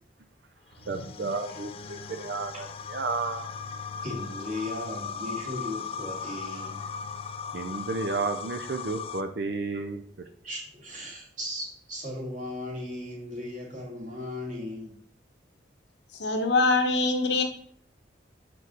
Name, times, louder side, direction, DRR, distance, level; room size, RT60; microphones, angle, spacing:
sound 1, 0.8-9.2, left 6 dB, 30° left, 0.3 m, -38 dB
voice 1, 0.9-3.5 7.5-10.0, right 3 dB, 65° right, 7 dB, 0.5 m, -32 dB
voice 2, 4.0-6.8 10.4-15.0, left 1 dB, 45° right, -2 dB, 2.2 m, -37 dB
voice 3, 16.2-17.4, left 3 dB, 70° left, 5 dB, 0.9 m, -23 dB
6.2 x 4.6 x 3.9 m, 0.63 s
head